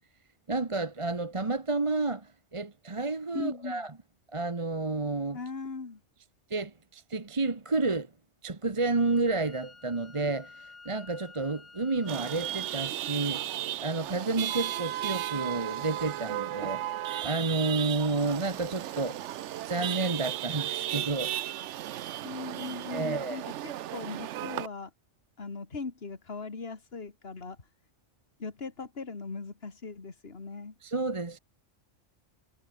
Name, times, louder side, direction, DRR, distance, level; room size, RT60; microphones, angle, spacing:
voice 1, 0.5-3.9 4.3-5.4 6.5-8.1 8.4-13.5 13.8-19.2 19.7-21.3 22.9-23.5 30.8-31.4, right 3 dB, 25° right, 1.2 m, -30 dB
voice 2, 3.3-3.8 5.3-6.0 22.2-24.9 25.4-27.6 28.4-30.7, left 4 dB, 55° left, 2.4 m, -39 dB
Wind instrument woodwind instrument, 8.9-12.9, left 4 dB, 85° left, 2.7 m, -51 dB
Chatter / Vehicle horn car horn honking / Traffic noise roadway noise, 12.1-24.7, right 13 dB, 80° right, 0.9 m, -35 dB
omnidirectional pair, 1.2 m